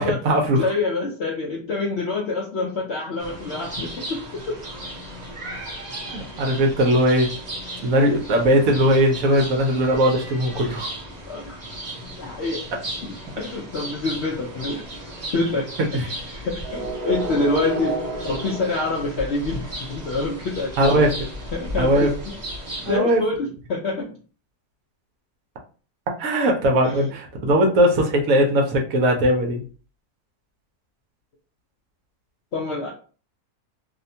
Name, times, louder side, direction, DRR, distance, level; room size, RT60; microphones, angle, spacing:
voice 1, 0.0-0.7 6.4-7.3 7.8-10.9 15.9-16.0 20.8-21.1 21.8-22.1 22.9-23.2 26.2-29.6, equal, 70° right, 2 dB, 1.0 m, -19 dB
voice 2, 0.6-4.6 11.3-11.6 12.2-12.6 13.0-14.8 15.3-15.7 16.0-21.1 21.5-22.1 22.9-24.1 26.8-27.0 32.5-32.9, left 3 dB, 70° left, -2 dB, 0.6 m, -26 dB
sound 1, 3.2-23.0, right 1 dB, 45° right, 0.5 m, -34 dB
2.7 x 2.1 x 2.6 m, 0.39 s
omnidirectional pair, 1.6 m